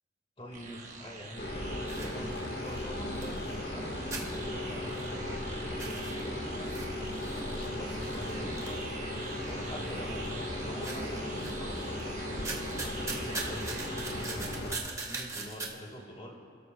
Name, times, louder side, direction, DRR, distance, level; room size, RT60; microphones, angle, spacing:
voice 1, 0.4-1.5 1.9-5.3 5.7-6.8 7.2-9.1 9.5-13.7 14.1-14.5 15.1-16.4, equal, 30° left, 1 dB, 1.9 m, -46 dB
sound 1, 0.5-14.3, right 3 dB, 40° right, 1.4 m, -45 dB
sound 2, 1.4-14.8, left 1 dB, 60° left, 1.6 m, -36 dB
sound 3, 1.9-3.8 4.1-5.4 5.7-9.5 10.0-10.5 10.8-12.0 12.3-15.7, right 3 dB, 15° right, 1.0 m, -41 dB
29.0 x 13.0 x 2.3 m, 2.1 s
head